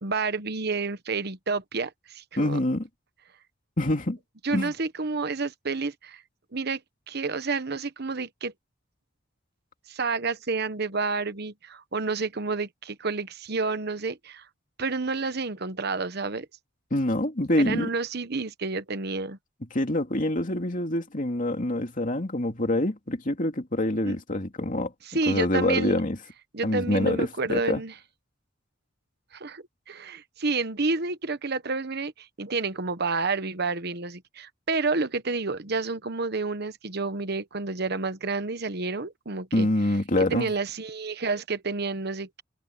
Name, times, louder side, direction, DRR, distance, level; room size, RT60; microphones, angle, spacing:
voice 1, 0.0-2.6 4.4-6.2 6.5-6.8 7.1-8.5 9.9-14.5 14.8-16.5 17.6-19.4 24.0-24.2 25.1-26.0 26.5-27.9 29.3-39.7 40.2-42.4, right 4 dB, 55° right, 1.2 m, -30 dB
voice 2, 2.4-2.9 3.8-4.2 4.5-4.7 16.9-17.9 19.7-24.9 25.3-26.2 26.6-27.8 39.5-40.5, left 1 dB, 40° left, 2.7 m, -26 dB
head